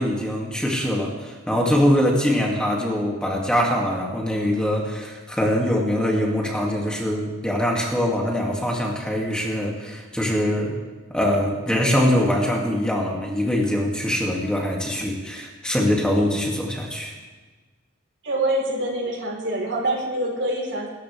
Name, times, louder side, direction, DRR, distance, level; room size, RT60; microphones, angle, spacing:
voice 1, 0.0-10.7 11.1-17.1, equal, 5° left, -2 dB, 2.3 m, -23 dB
voice 2, 18.2-20.9, right 1 dB, 65° right, 0 dB, 3.9 m, -25 dB
27.0 x 14.0 x 3.4 m, 1.3 s
head